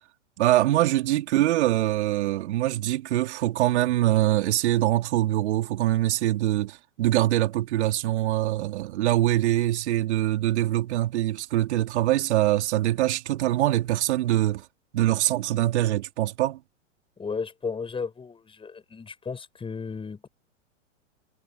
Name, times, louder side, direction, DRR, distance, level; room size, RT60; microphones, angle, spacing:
voice 1, 0.4-14.6 14.9-16.6, right 15 dB, 60° right, 4.4 m, -23 dB
voice 2, 17.2-20.3, left 5 dB, 15° left, 5.8 m, -34 dB
hypercardioid pair, 110°, 37 cm